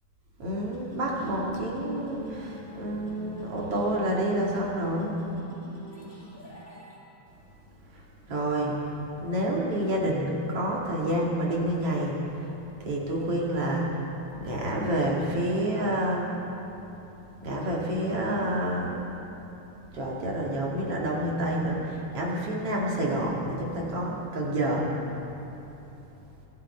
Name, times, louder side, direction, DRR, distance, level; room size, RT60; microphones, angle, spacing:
voice 1, 0.4-5.1 8.3-8.7 9.2-12.1 12.8-13.9 14.4-16.3 17.4-18.9 19.9-24.9, right 1 dB, 50° right, -3 dB, 3.0 m, -28 dB
sound 1, 0.7-7.0, equal, 20° left, 2.0 m, -41 dB
24.5 x 13.5 x 4.5 m, 2.9 s
omnidirectional pair, 3.5 m